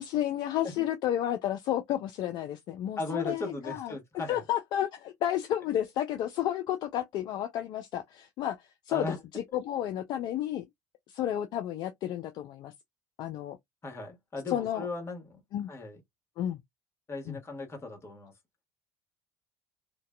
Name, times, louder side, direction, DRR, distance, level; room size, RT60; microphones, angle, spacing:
voice 1, 0.0-4.0 4.3-10.6 11.1-12.7 13.2-13.6 14.5-14.9 15.5-15.7 16.4-16.6 17.3-17.4, left 11 dB, 55° left, 0.4 m, -31 dB
voice 2, 3.0-4.4 8.9-9.2 13.8-15.4 15.7-16.0 17.1-18.3, left 2 dB, 30° left, 1.2 m, -37 dB
2.5 x 2.2 x 2.2 m
hypercardioid pair, 65°, 9 cm